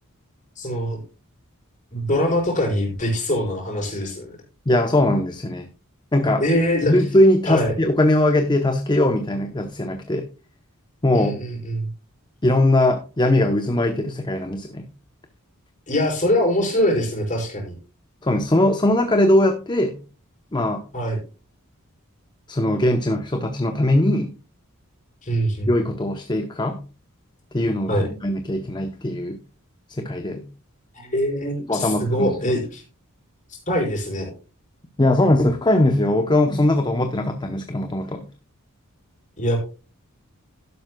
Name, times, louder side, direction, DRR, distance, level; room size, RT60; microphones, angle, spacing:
voice 1, 0.6-1.0 1.9-4.3 6.4-6.9 7.5-7.7 11.1-11.9 15.9-17.7 20.9-21.2 25.2-25.7 27.9-28.1 30.9-32.8 33.7-34.3 39.4-39.6, equal, 35° left, 0 dB, 4.4 m, -23 dB
voice 2, 4.7-5.7 6.1-6.4 6.8-10.3 11.0-11.3 12.4-14.9 18.2-20.0 20.5-20.8 22.5-24.3 25.7-26.8 27.5-29.4 30.0-30.5 31.7-32.3 35.0-38.3, left 1 dB, 20° left, 7 dB, 0.7 m, -20 dB
12.0 x 10.5 x 2.2 m, 0.33 s
head